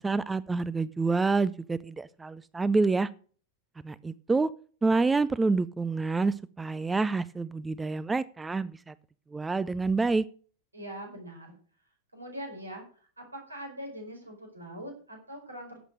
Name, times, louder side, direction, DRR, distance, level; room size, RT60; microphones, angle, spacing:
voice 1, 0.0-3.1 3.8-4.5 4.8-8.9 9.3-10.2, right 3 dB, 10° right, 19 dB, 0.4 m, -27 dB
voice 2, 10.7-11.6 12.1-12.8 13.2-15.8, equal, 80° right, 2 dB, 4.9 m, -42 dB
11.0 x 8.2 x 6.5 m, 0.43 s
figure-of-eight pair, 90°, 0 cm